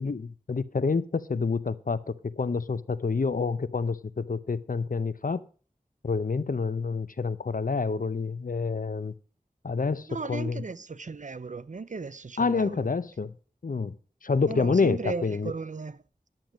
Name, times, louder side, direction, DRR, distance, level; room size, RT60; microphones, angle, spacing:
voice 1, 0.0-5.4 6.0-9.1 9.6-10.6 12.4-13.3 13.6-14.0 14.2-15.5, left 4 dB, 65° left, 0.6 m, -28 dB
voice 2, 10.1-12.9 14.5-16.0, right 4 dB, 60° right, 0.5 m, -36 dB
10.5 x 7.8 x 5.2 m
wide cardioid pair, 45°, 15 cm